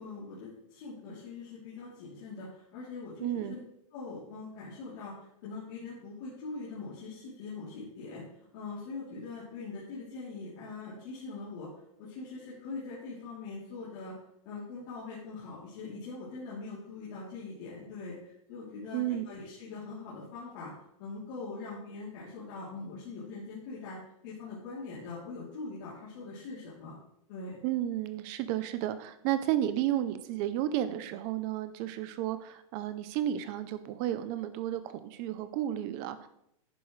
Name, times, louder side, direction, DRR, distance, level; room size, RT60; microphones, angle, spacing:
voice 1, 0.0-3.6 3.9-5.1 5.4-8.2 8.5-11.7 12.0-14.1 14.4-20.7 21.0-24.0 24.2-27.0 27.3-27.6, left 3 dB, 35° left, -9 dB, 2.9 m, -42 dB
voice 2, 3.2-3.6 18.9-19.2 27.6-36.3, right 12 dB, 20° right, 12 dB, 0.5 m, -32 dB
10.5 x 10.0 x 3.1 m, 0.79 s
hypercardioid pair, 175°, 18 cm